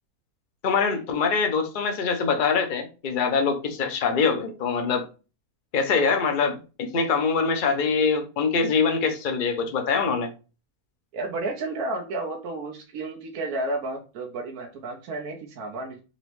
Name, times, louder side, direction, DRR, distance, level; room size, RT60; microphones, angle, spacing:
voice 1, 0.6-5.0 5.7-10.3, left 5 dB, 45° left, 0.7 m, -24 dB
voice 2, 11.1-16.0, right 2 dB, 90° right, 1.2 m, -32 dB
4.1 x 3.0 x 3.1 m
omnidirectional pair, 1.5 m